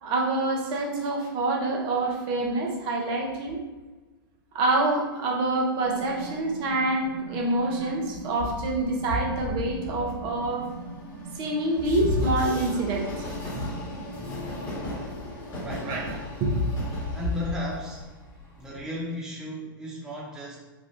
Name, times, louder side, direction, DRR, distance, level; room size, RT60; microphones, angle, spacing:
voice 1, 0.0-3.6 4.5-10.7 11.4-13.3 15.9-16.1 16.4-16.6, right 2 dB, 40° right, 0 dB, 0.7 m, -26 dB
sound 1, 5.8-14.8, right 1 dB, 60° left, 0.9 m, -41 dB
Train, 8.4-18.8, left 2 dB, 35° left, 1.4 m, -34 dB
voice 2, 15.6-16.0 17.1-18.1 18.6-20.6, left 1 dB, 5° right, -4 dB, 0.5 m, -35 dB
3.3 x 2.3 x 2.5 m, 1.2 s
hypercardioid pair, 105°, 12 cm